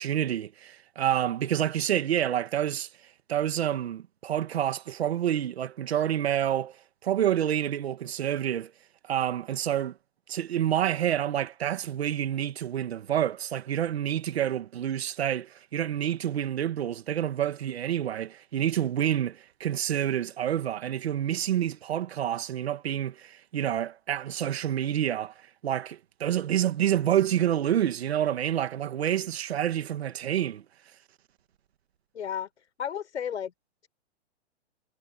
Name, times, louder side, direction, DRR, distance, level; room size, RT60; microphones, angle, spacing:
voice 1, 0.0-2.9 3.3-6.8 7.0-8.7 9.1-9.9 10.3-25.3 25.6-30.6, right 10 dB, 65° right, 2.0 m, -28 dB
voice 2, 32.1-33.5, left 8 dB, 85° left, 7.1 m, -33 dB
hypercardioid pair, 170°, 33 cm